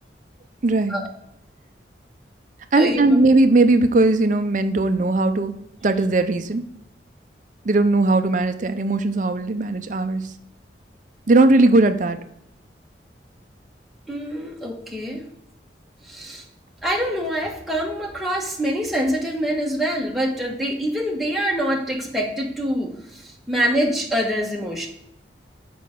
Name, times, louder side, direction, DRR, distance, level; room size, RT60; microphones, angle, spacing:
voice 1, 0.6-1.0 2.7-5.5 5.8-6.6 7.6-10.2 11.3-12.2, right 2 dB, 45° right, 9 dB, 0.5 m, -18 dB
voice 2, 14.1-15.2 16.0-16.4 16.8-24.9, equal, ahead, -2 dB, 1.2 m, -25 dB
6.6 x 5.1 x 3.7 m, 0.75 s
head